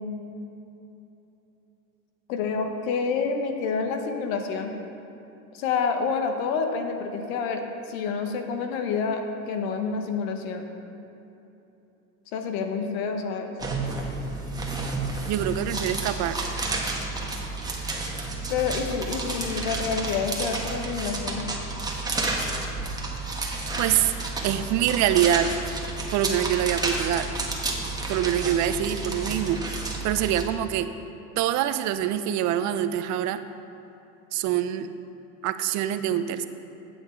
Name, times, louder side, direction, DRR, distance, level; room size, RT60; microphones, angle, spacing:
voice 1, 2.3-4.7 5.5-10.7 12.3-13.6 18.5-21.5, left 5 dB, 75° left, 5 dB, 1.1 m, -28 dB
sound 1, 13.6-30.4, right 2 dB, 10° right, 1.2 m, -31 dB
voice 2, 15.3-16.4 23.8-24.1 24.4-25.5 26.1-27.3 28.1-30.9 31.4-33.4 34.3-34.9 35.4-36.5, right 11 dB, 45° right, 11 dB, 0.5 m, -25 dB
8.7 x 7.8 x 4.5 m, 2.9 s
supercardioid pair, 110°, 41 cm